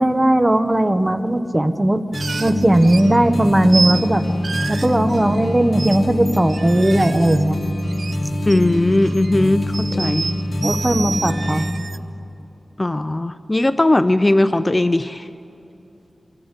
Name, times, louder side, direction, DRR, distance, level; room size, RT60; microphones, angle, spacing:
voice 1, 0.0-2.0 2.4-4.2 4.7-7.6 10.0-10.1 10.6-11.7, right 1 dB, 20° right, 10 dB, 1.0 m, -17 dB
sound 1, 2.1-11.7, left 1 dB, 65° left, 1.8 m, -24 dB
sound 2, 2.1-3.2 3.7-4.1 4.4-5.5 5.8-6.0 6.3-8.2 8.4-9.3 9.7-12.0, right 4 dB, 75° right, 0.5 m, -29 dB
voice 2, 8.5-10.3 12.8-15.3, left 1 dB, 25° left, 12 dB, 0.5 m, -18 dB
23.5 x 15.5 x 8.2 m, 2.8 s
wide cardioid pair, 85°, 0 cm